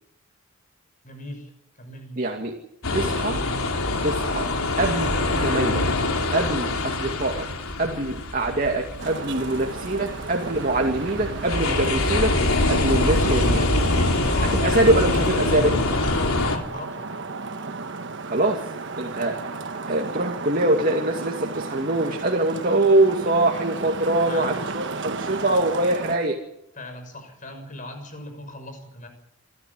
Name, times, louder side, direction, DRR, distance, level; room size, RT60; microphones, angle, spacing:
voice 1, 1.0-1.5 1.8-2.2 13.0-13.8 14.3-14.7 15.8-17.1 24.3-24.6 26.7-29.1, left 1 dB, 35° left, 6 dB, 6.4 m, -38 dB
voice 2, 2.2-2.6 2.9-3.4 4.0-4.5 4.8-5.9 6.3-7.5 7.8-12.4 12.7-13.6 14.6-15.8 18.2-18.6 19.0-19.6 19.9-26.4, right 2 dB, 40° right, 2 dB, 2.4 m, -23 dB
sound 1, 2.8-16.6, left 2 dB, 80° left, 3.3 m, -24 dB
Traffic noise roadway noise, 9.0-26.2, right 3 dB, 55° right, 1.3 m, -34 dB
27.5 x 13.5 x 9.8 m, 0.81 s
head